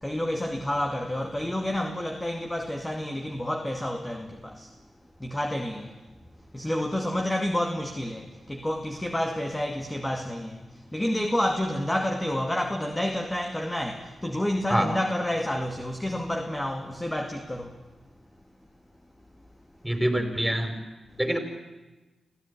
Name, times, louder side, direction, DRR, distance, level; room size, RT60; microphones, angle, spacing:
voice 1, 0.0-4.7 5.2-6.0 6.5-17.8, left 1 dB, 15° left, 2.3 m, -29 dB
voice 2, 19.8-20.7 21.2-21.4, right 1 dB, 5° right, 5.0 m, -25 dB
25.0 x 15.5 x 9.8 m
supercardioid pair, 40°, 0 cm